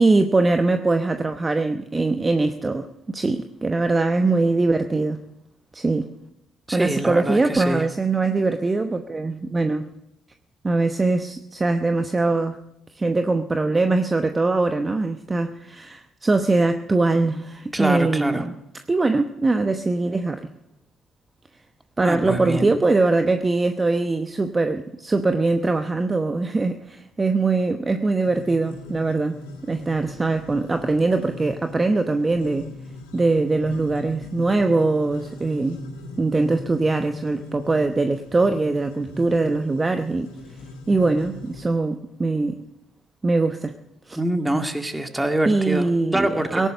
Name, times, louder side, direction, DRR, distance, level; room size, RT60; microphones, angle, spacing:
voice 1, 0.0-5.2 5.7-6.1 6.7-9.9 10.6-12.6 13.0-18.5 18.9-20.4 22.0-29.4 29.7-32.7 33.1-35.8 36.2-40.3 40.9-42.6 43.2-43.7 44.1-44.2 45.5-46.7, right 3 dB, 30° right, 7 dB, 1.0 m, -22 dB
voice 2, 6.7-7.8 17.7-18.4 22.0-22.7 44.2-45.9 46.1-46.7, right 1 dB, 10° right, 6 dB, 2.1 m, -25 dB
sound 1, 28.2-41.6, left 2 dB, 85° left, 2.2 m, -40 dB
18.0 x 11.0 x 6.8 m, 0.85 s
hypercardioid pair, 50°, 0 cm